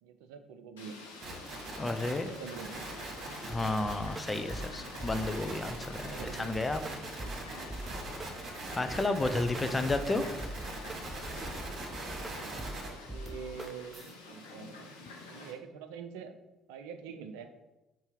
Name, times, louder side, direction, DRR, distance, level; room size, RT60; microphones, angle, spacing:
voice 1, 0.0-1.0 2.2-2.8 6.0-6.5 12.2-16.4 16.7-17.5, right 6 dB, 70° right, 8 dB, 0.5 m, -46 dB
Fowl, 0.8-15.5, left 3 dB, 80° left, 1.0 m, -48 dB
sound 1, 1.2-12.9, right 2 dB, 45° right, 1.9 m, -42 dB
voice 2, 1.8-2.3 3.4-6.8 8.3-8.5 8.8-10.2, left 2 dB, 20° left, 8 dB, 0.6 m, -32 dB
sound 2, 3.5-14.1, right 1 dB, 20° right, 0.7 m, -44 dB
4.5 x 4.5 x 5.1 m, 1.0 s
figure-of-eight pair, 50°, 0 cm